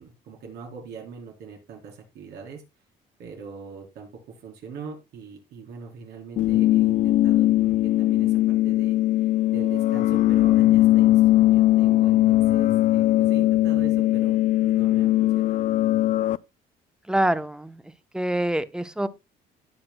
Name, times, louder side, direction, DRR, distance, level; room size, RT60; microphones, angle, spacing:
voice 1, 0.0-2.6 3.2-15.6, right 5 dB, 75° right, 1 dB, 3.9 m, -42 dB
sound 1, 6.4-16.4, left 15 dB, 50° left, 0.4 m, -20 dB
voice 2, 17.1-17.8 18.1-19.1, right 1 dB, 5° right, 14 dB, 0.8 m, -25 dB
17.5 x 6.1 x 2.2 m, 0.22 s
cardioid pair, 110°, 17 cm